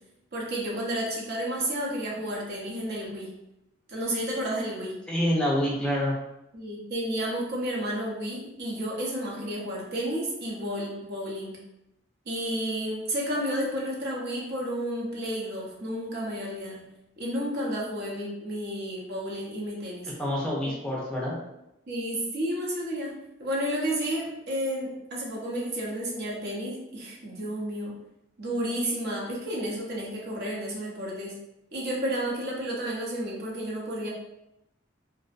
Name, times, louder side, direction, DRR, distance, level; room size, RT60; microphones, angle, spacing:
voice 1, 0.3-3.3 3.9-5.0 6.5-11.6 12.3-16.8 17.2-20.1 21.9-23.1 23.4-27.9 28.4-31.4 31.7-34.1, equal, 60° right, -3 dB, 0.7 m, -31 dB
voice 2, 5.1-6.1 20.2-21.3, equal, 5° left, -5 dB, 0.4 m, -26 dB
2.5 x 2.0 x 2.4 m, 0.86 s
head